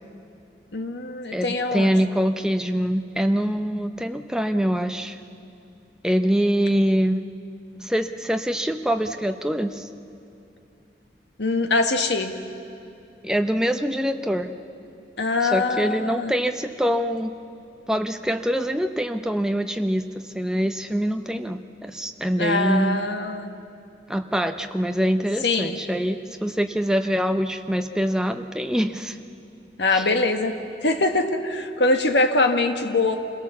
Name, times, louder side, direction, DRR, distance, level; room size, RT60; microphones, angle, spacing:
voice 1, 0.7-1.9 11.4-12.3 15.2-16.3 22.4-23.6 25.4-25.8 29.8-33.2, left 2 dB, 85° left, 6 dB, 1.5 m, -23 dB
voice 2, 1.3-5.2 6.0-7.2 7.8-9.9 13.2-14.6 15.4-17.3 17.9-23.1 24.1-29.2 29.9-30.0, equal, 5° right, 6 dB, 0.7 m, -24 dB
26.5 x 17.5 x 7.2 m, 2.7 s
head